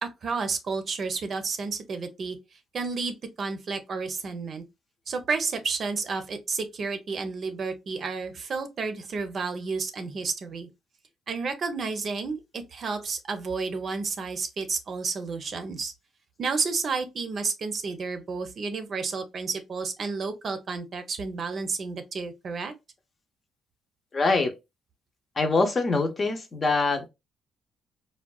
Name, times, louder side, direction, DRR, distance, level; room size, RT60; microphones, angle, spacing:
voice 1, 0.0-2.4 2.7-4.6 5.1-10.7 11.3-15.9 16.4-22.7, right 4 dB, 50° right, 0.6 m, -31 dB
voice 2, 24.1-24.5 25.4-27.1, left 3 dB, 40° left, 0.7 m, -24 dB
3.6 x 2.2 x 2.3 m
cardioid pair, 90°, 0 cm